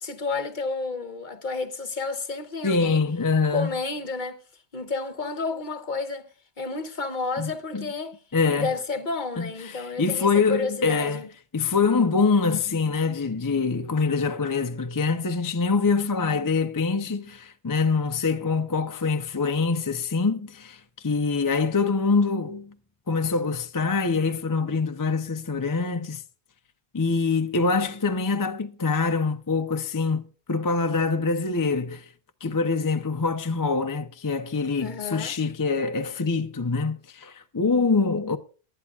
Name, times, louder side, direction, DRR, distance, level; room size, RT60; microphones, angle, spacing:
voice 1, 0.0-3.0 3.5-4.4 4.7-6.3 6.6-8.2 8.6-11.3 34.8-35.3, left 4 dB, 45° left, 1.0 m, -31 dB
voice 2, 2.6-3.7 7.4-7.9 8.3-8.7 9.4-11.2 11.5-22.7 23.1-26.2 26.9-32.1 32.4-38.4, left 4 dB, 25° left, 0.5 m, -25 dB
23.0 x 11.0 x 2.4 m
omnidirectional pair, 1.2 m